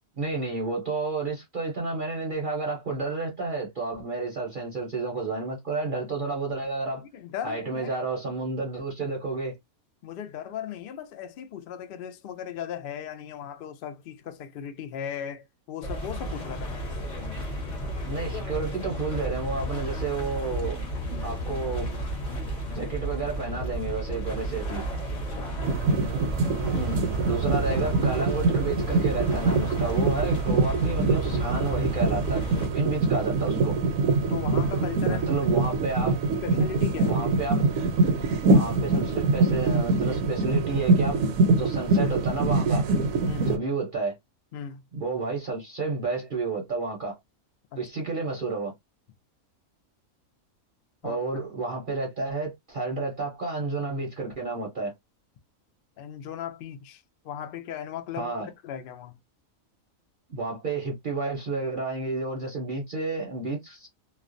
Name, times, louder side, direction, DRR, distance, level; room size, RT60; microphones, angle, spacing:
voice 1, 0.2-7.0 7.4-9.6 18.0-20.8 21.2-21.9 22.7-24.8 26.7-27.0 27.2-32.4 32.7-33.8 35.1-36.2 37.0-37.6 38.4-41.2 41.5-42.9 43.4-44.2 44.9-47.2 47.8-48.7 51.0-54.9 58.1-58.5 60.3-63.9, right 3 dB, 50° right, 0.7 m, -31 dB
voice 2, 7.1-8.0 10.0-17.0 25.1-25.6 34.3-35.2 36.0-36.1 36.4-37.2 37.8-37.9 43.3-43.5 44.5-44.8 51.0-51.2 56.0-59.2, left 9 dB, 75° left, 0.5 m, -37 dB
sound 1, 15.8-32.7, equal, 40° left, 0.8 m, -33 dB
sound 2, 25.6-43.6, right 3 dB, 75° right, 0.9 m, -24 dB
2.4 x 2.1 x 2.5 m
omnidirectional pair, 1.5 m